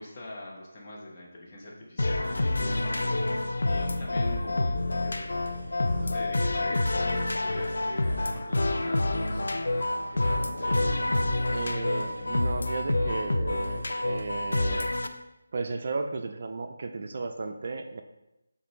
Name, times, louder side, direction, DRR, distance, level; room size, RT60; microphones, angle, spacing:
voice 1, 0.0-3.2 3.6-5.3 6.0-9.4 10.1-10.9, left 1 dB, 30° left, -3 dB, 0.9 m, -42 dB
sound 1, 2.0-15.1, left 2 dB, 75° left, 0.4 m, -28 dB
voice 2, 11.5-14.9 15.5-18.0, right 3 dB, 50° right, 6 dB, 0.3 m, -34 dB
6.8 x 2.5 x 3.0 m, 0.93 s
figure-of-eight pair, 165°, 0 cm